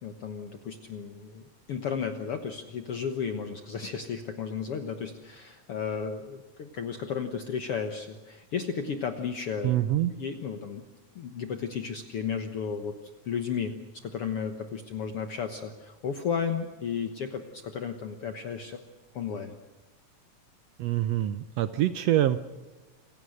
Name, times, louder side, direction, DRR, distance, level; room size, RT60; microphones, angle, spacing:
voice 1, 0.0-9.8 10.1-10.8 11.1-12.9 13.2-13.7 14.0-18.8 19.1-19.5, left 6 dB, 55° left, 7 dB, 1.7 m, -34 dB
voice 2, 9.6-10.1 20.8-22.4, right 13 dB, 85° right, 12 dB, 1.4 m, -25 dB
28.0 x 16.5 x 6.5 m, 1.2 s
omnidirectional pair, 3.9 m